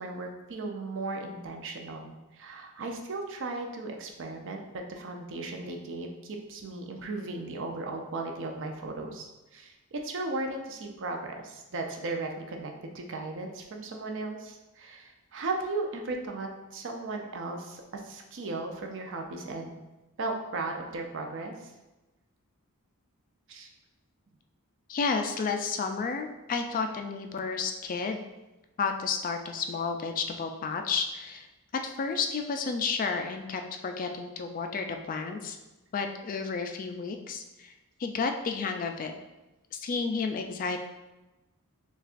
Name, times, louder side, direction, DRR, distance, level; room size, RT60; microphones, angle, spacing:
voice 1, 0.0-19.7 20.2-21.7 23.5-23.7, right 3 dB, 60° right, 2 dB, 0.5 m, -36 dB
voice 2, 24.9-28.2 28.8-31.5 31.8-35.6 35.9-37.7 38.0-39.1 39.7-40.8, left 5 dB, 40° left, 5 dB, 0.3 m, -31 dB
6.3 x 2.4 x 2.5 m, 1.1 s
head